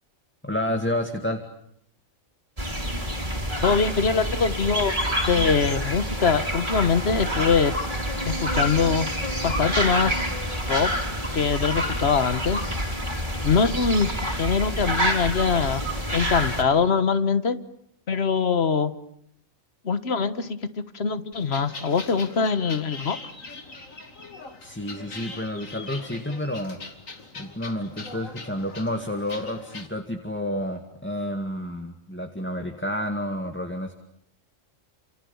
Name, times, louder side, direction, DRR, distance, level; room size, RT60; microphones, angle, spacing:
voice 1, 0.4-1.4 24.6-26.8 27.4-33.9, left 1 dB, 10° left, 4 dB, 2.1 m, -30 dB
sound 1, 2.6-16.6, equal, 25° right, 4.4 m, -27 dB
voice 2, 3.6-5.0 5.2-7.7 8.2-9.1 9.4-10.3 10.7-10.9 11.3-12.6 13.4-15.8 16.1-17.6 18.1-18.9 19.8-23.2, left 5 dB, 55° left, 12 dB, 1.6 m, -23 dB
sound 2, 21.3-29.9, left 3 dB, 90° left, 2.8 m, -41 dB
29.5 x 27.5 x 7.2 m, 0.69 s
omnidirectional pair, 1.3 m